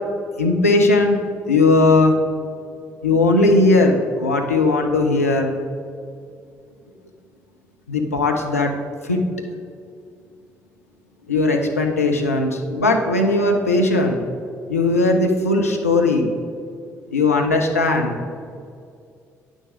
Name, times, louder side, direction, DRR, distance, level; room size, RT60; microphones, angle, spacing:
voice 1, 0.4-1.2 1.5-2.2 3.0-5.5 7.9-8.7 9.0-9.2 11.3-14.2 14.7-16.3 17.1-18.1, left 2 dB, 90° left, 2 dB, 0.6 m, -18 dB
9.0 x 6.3 x 4.8 m, 2.3 s
figure-of-eight pair, 45°, 8 cm